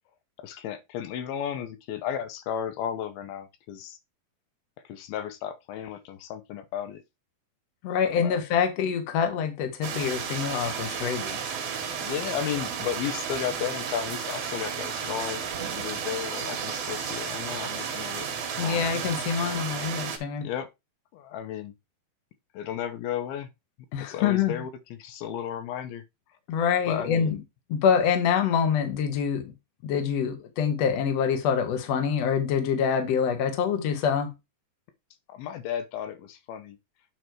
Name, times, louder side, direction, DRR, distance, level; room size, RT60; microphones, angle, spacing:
voice 1, 0.4-4.0 4.8-7.0 8.0-8.4 11.9-15.4 15.7-18.3 18.6-18.9 20.4-20.7 21.1-21.7 22.5-23.5 24.0-26.0 26.9-27.4 35.3-36.8, left 9 dB, 80° left, 2.7 m, -34 dB
voice 2, 7.8-11.4 18.6-20.5 23.9-24.5 26.5-27.4 27.7-29.5 29.8-34.3, left 7 dB, 60° left, 2.0 m, -25 dB
sound 1, 9.8-20.2, right 7 dB, 60° right, 1.9 m, -33 dB
9.2 x 3.4 x 4.5 m
omnidirectional pair, 4.3 m